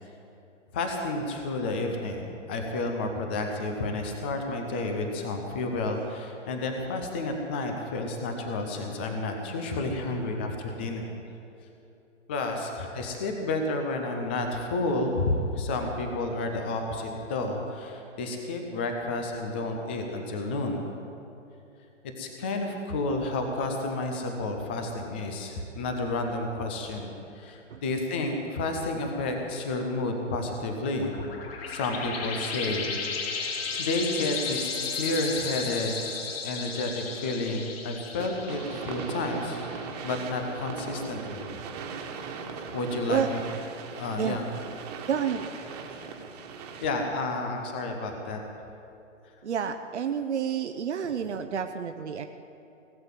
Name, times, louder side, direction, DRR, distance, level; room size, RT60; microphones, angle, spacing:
voice 1, 0.7-11.1 12.3-20.8 22.2-31.3 31.7-33.3 33.8-36.0 36.4-41.5 42.7-43.4 44.0-44.4 46.8-48.4, left 2 dB, 10° left, 4 dB, 0.4 m, -31 dB
sound 1, 30.9-40.0, left 5 dB, 50° left, 2.4 m, -34 dB
sound 2, 38.2-47.1, right 5 dB, 30° right, 1.6 m, -39 dB
voice 2, 45.1-45.5 49.4-52.3, right 8 dB, 60° right, 6 dB, 0.9 m, -29 dB
18.5 x 8.0 x 9.1 m, 2.8 s
figure-of-eight pair, 125°, 38 cm